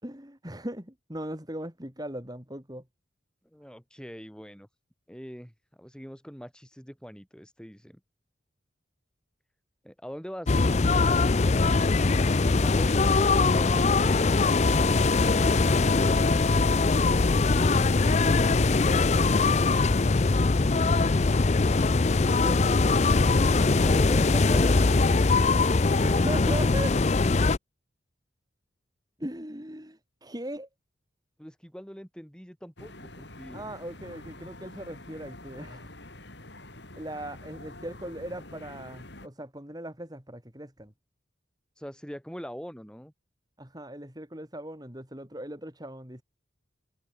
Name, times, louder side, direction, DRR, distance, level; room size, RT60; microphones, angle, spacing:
voice 1, 0.0-2.8 22.3-22.6 26.0-27.0 29.2-30.7 33.5-35.9 36.9-40.9 43.6-46.2, right 1 dB, 20° right, 3.4 m, -38 dB
voice 2, 3.5-4.7 5.1-8.0 9.8-10.6 12.6-14.4 23.7-25.3 31.4-33.7 41.8-43.1, equal, 5° left, 5.2 m, -42 dB
sound 1, 10.5-27.6, left 3 dB, 35° left, 0.5 m, -22 dB
sound 2, 32.8-39.3, left 1 dB, 60° left, 4.9 m, -46 dB
head